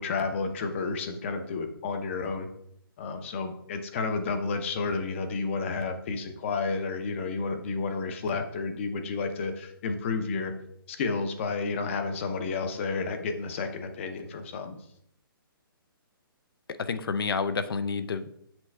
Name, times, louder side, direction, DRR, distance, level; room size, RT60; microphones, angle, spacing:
voice 1, 0.0-2.5 3.0-10.5 10.9-14.8, left 4 dB, 30° left, 7 dB, 0.7 m, -31 dB
voice 2, 16.7-18.3, left 5 dB, 75° left, 12 dB, 0.6 m, -29 dB
6.0 x 5.2 x 3.2 m, 0.72 s
hypercardioid pair, 165°, 12 cm